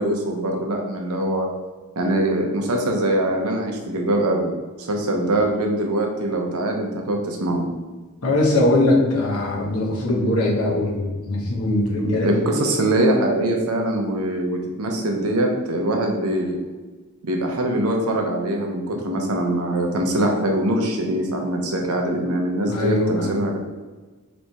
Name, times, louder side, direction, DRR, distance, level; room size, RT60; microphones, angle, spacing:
voice 1, 0.0-1.5 2.0-4.5 4.9-7.7 12.0-16.6 17.2-23.6, right 1 dB, 90° right, 2 dB, 0.8 m, -23 dB
voice 2, 8.2-12.3 22.7-23.3, left 2 dB, 85° left, -3 dB, 1.1 m, -21 dB
3.4 x 3.2 x 4.2 m, 1.3 s
head